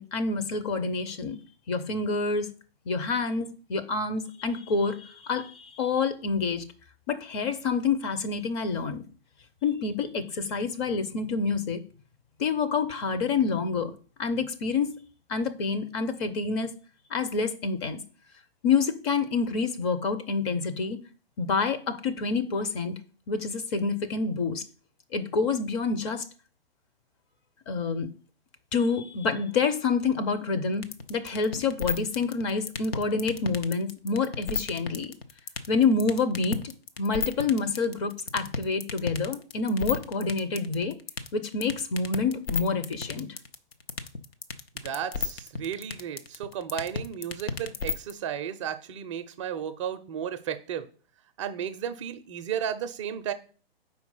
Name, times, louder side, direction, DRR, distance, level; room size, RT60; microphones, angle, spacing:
voice 1, 0.0-1.4 1.7-2.5 2.9-6.7 7.1-9.0 9.6-11.8 12.4-13.9 14.2-14.9 15.3-16.7 17.1-18.0 18.6-21.0 21.4-22.9 23.3-24.6 25.1-26.2 27.7-28.1 28.7-35.1 35.7-36.6 37.0-40.9 41.3-43.3, left 4 dB, 30° left, 7 dB, 0.6 m, -27 dB
sound 1, 30.8-48.1, left 5 dB, 75° left, 0.8 m, -31 dB
voice 2, 44.8-50.9 51.4-53.3, right 9 dB, 30° right, 8 dB, 0.5 m, -33 dB
4.7 x 4.5 x 5.5 m, 0.39 s
figure-of-eight pair, 125°, 30 cm